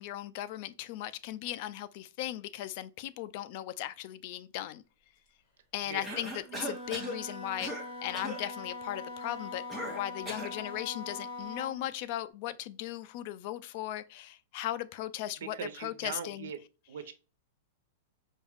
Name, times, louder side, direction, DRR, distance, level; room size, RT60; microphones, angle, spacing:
voice 1, 0.0-4.8 5.7-7.7 8.0-16.5, left 13 dB, 45° left, 0.4 m, -37 dB
voice 2, 5.8-6.3 15.5-16.6 16.9-17.1, right 8 dB, 70° right, 0.7 m, -41 dB
Cough, 6.0-7.2 7.6-7.9 8.1-8.4 9.7-10.6, equal, 5° right, 0.9 m, -39 dB
Wind instrument woodwind instrument, 6.4-11.8, left 2 dB, 30° left, 2.1 m, -42 dB
5.1 x 2.4 x 3.4 m
supercardioid pair, 155°, 0 cm